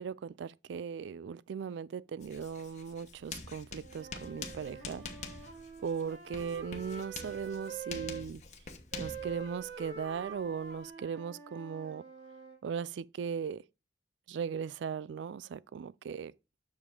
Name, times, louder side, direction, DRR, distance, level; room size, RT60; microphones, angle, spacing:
voice 1, 0.0-5.0 5.8-8.4 9.0-12.0 12.6-13.6 14.3-16.3, right 6 dB, 85° right, 0.3 m, -38 dB
Writing, 2.2-10.9, left 4 dB, 40° left, 1.2 m, -46 dB
Wind instrument woodwind instrument, 3.8-8.2 8.9-12.6, right 5 dB, 70° right, 1.9 m, -46 dB
7.2 x 6.5 x 3.7 m
head